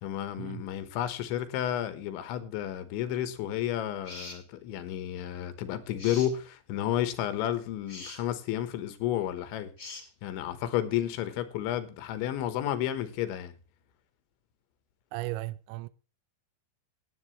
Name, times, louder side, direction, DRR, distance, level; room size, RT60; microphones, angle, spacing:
voice 1, 0.0-9.7 10.2-13.6, left 11 dB, 80° left, 3.5 m, -32 dB
sound 1, 4.0-4.4 6.0-6.3 7.9-8.2 9.8-10.1, left 3 dB, 25° left, 2.0 m, -42 dB
voice 2, 15.1-15.9, right 18 dB, 80° right, 2.9 m, -36 dB
18.0 x 8.5 x 3.1 m
omnidirectional pair, 5.4 m